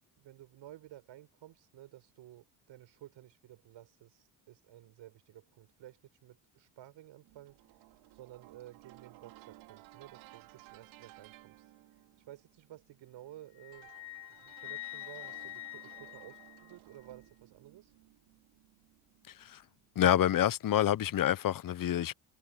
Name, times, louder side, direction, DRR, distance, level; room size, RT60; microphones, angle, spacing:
voice 1, 0.2-17.9, right 13 dB, 70° right, 6.8 m, -54 dB
sound 1, 7.2-20.4, right 18 dB, 90° right, 3.1 m, -58 dB
Wind instrument woodwind instrument, 13.6-17.1, left 20 dB, 80° left, 6.9 m, -46 dB
voice 2, 19.3-19.6 19.9-22.1, left 11 dB, 45° left, 1.0 m, -28 dB
cardioid pair, 85°, 45 cm